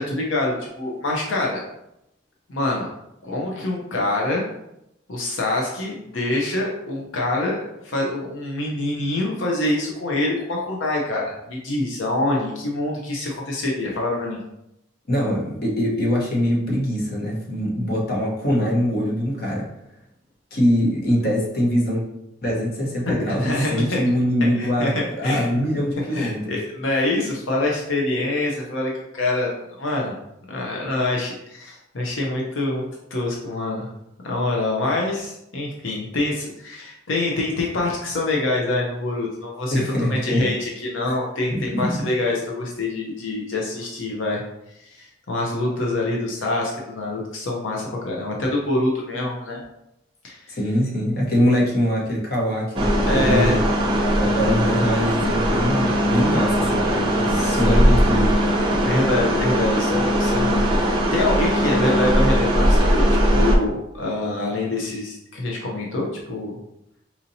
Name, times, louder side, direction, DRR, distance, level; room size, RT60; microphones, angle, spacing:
voice 1, 0.0-1.6 2.5-2.9 3.2-4.4 5.1-14.4 23.1-24.0 24.5-25.5 25.8-30.1 30.5-33.9 34.2-39.8 40.1-44.4 44.8-49.6 50.2-50.6 53.0-53.6 57.3-57.9 58.8-63.1 63.3-66.6, left 2 dB, 85° left, -2 dB, 0.7 m, -25 dB
voice 2, 15.1-19.6 20.5-22.0 22.4-26.6 39.7-40.5 41.0-41.2 41.5-42.1 50.5-53.7 54.1-58.4, equal, 50° left, -3 dB, 0.9 m, -23 dB
sound 1, 52.8-63.6, equal, 25° right, 0.5 m, -20 dB
4.2 x 2.7 x 2.7 m, 0.83 s
head